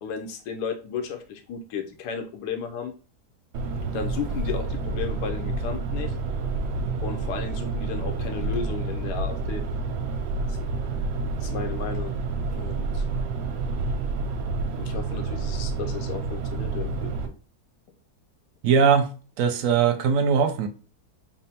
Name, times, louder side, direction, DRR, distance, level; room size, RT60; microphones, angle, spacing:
voice 1, 0.0-2.9 3.9-6.1 7.0-9.6 10.5-10.6 11.4-12.2 12.6-13.1 14.8-17.1, left 6 dB, 85° left, 1.2 m, -34 dB
sound 1, 3.5-17.3, right 3 dB, 85° right, 1.2 m, -29 dB
voice 2, 18.6-19.1 19.4-20.7, right 6 dB, 70° right, 0.8 m, -20 dB
3.7 x 2.0 x 4.2 m
omnidirectional pair, 1.7 m